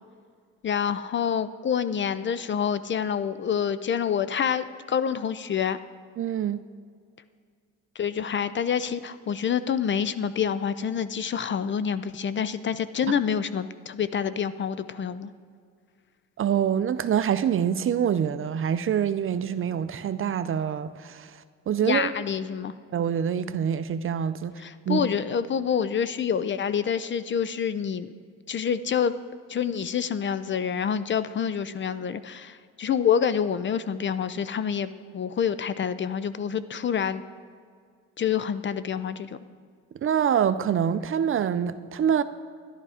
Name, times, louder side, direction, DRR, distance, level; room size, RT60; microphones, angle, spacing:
voice 1, 0.6-5.8 8.0-15.3 21.8-22.7 24.6-28.1 28.5-29.1 29.5-37.2 38.2-39.4, left 7 dB, 40° left, 0.5 m, -27 dB
voice 2, 6.2-6.6 16.4-22.1 22.9-24.5 24.9-25.0 40.0-42.2, right 8 dB, 45° right, 0.5 m, -25 dB
11.0 x 11.0 x 5.0 m
cardioid pair, 90°, 30 cm